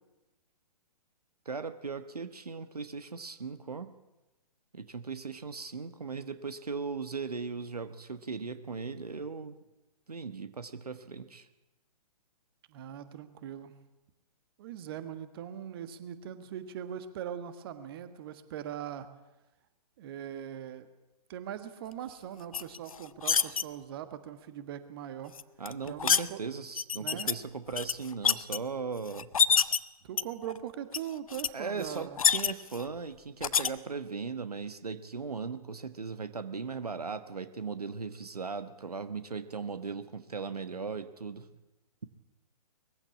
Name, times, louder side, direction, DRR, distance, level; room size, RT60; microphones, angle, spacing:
voice 1, 1.4-3.9 4.7-9.5 10.1-11.5 25.6-29.3 31.5-41.5, right 5 dB, 75° right, 11 dB, 1.3 m, -38 dB
voice 2, 12.7-13.7 14.6-19.1 20.0-20.9 21.3-25.4 25.8-26.4 27.0-27.3 30.0-32.2, right 10 dB, 35° right, 11 dB, 1.5 m, -41 dB
sound 1, 22.5-23.6 25.3-26.2 26.8-27.3 27.7-28.6 29.1-29.8 30.2-30.6 30.9-31.0 31.3-31.5 31.8-32.8 33.4-33.7, left 7 dB, 60° left, 0.8 m, -26 dB
21.0 x 15.0 x 8.5 m, 1.0 s
figure-of-eight pair, 125°, 20 cm